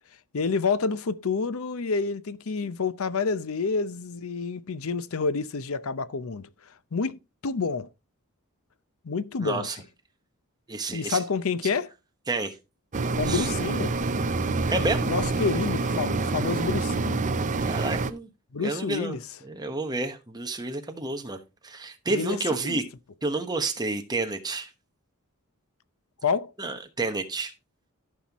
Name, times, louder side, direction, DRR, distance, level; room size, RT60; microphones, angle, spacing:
voice 1, 0.3-6.5 6.9-7.9 9.0-9.7 10.9-11.9 13.2-14.0 15.1-17.2 18.5-19.2 22.1-22.4 22.6-22.8 26.2-26.5, left 4 dB, 70° left, 0.6 m, -28 dB
voice 2, 9.4-9.8 10.7-11.2 12.3-12.6 13.3-13.5 14.7-15.1 17.6-18.3 18.6-19.2 19.4-21.4 21.6-22.8 23.2-24.7 26.6-27.5, right 2 dB, 20° right, 1.2 m, -30 dB
sound 1, 12.9-18.1, right 3 dB, 35° right, 0.6 m, -27 dB
14.5 x 5.7 x 3.0 m
head